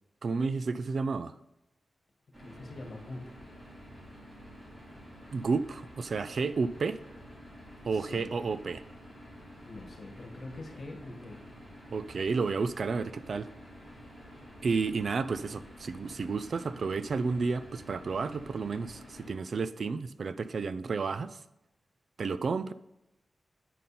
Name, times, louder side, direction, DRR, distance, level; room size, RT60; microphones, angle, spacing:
voice 1, 0.2-1.3 5.3-7.0 7.8-8.8 11.9-13.5 14.6-21.4 22.2-22.7, right 4 dB, 60° right, 0.3 m, -31 dB
sound 1, 2.3-19.3, equal, 20° right, 3.0 m, -50 dB
voice 2, 2.4-3.4 7.9-8.3 9.7-11.4, left 2 dB, 55° left, 1.6 m, -44 dB
9.2 x 5.3 x 4.2 m
wide cardioid pair, 110°, 0 cm